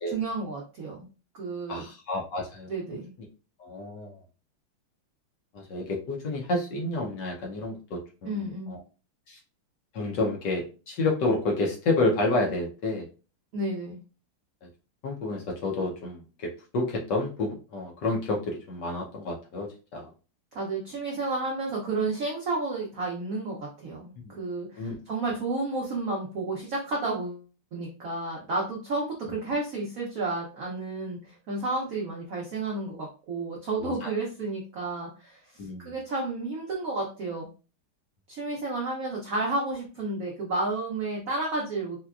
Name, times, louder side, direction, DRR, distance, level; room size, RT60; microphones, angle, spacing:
voice 1, 0.1-1.1 1.3-1.8 2.7-3.1 8.2-8.8 13.5-14.0 20.5-27.4 27.7-37.5 38.3-42.0, right 2 dB, 80° right, -2 dB, 0.7 m, -31 dB
voice 2, 1.7-3.0 3.6-4.2 5.5-8.8 9.3-9.4 9.9-13.1 15.0-20.1 24.2-24.3 24.8-25.0 33.8-34.1 35.6-35.9, left 2 dB, 65° left, 0 dB, 1.2 m, -30 dB
4.2 x 2.2 x 2.3 m, 0.34 s
omnidirectional pair, 2.3 m